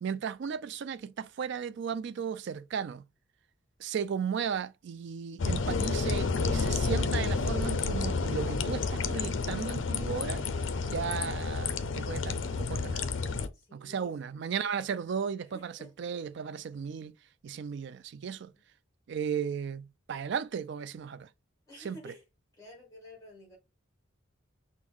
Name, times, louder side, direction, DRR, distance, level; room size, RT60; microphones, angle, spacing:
voice 1, 0.0-3.0 3.8-10.4 10.9-13.0 13.7-17.1 17.4-18.5 19.1-21.3 21.8-22.1, right 7 dB, 60° right, 0.3 m, -35 dB
sound 1, 5.4-13.5, left 4 dB, 65° left, 0.5 m, -30 dB
voice 2, 13.5-14.6 15.4-15.9 21.7-22.2 22.5-23.6, left 1 dB, 15° left, 2.5 m, -51 dB
6.1 x 2.1 x 3.6 m
head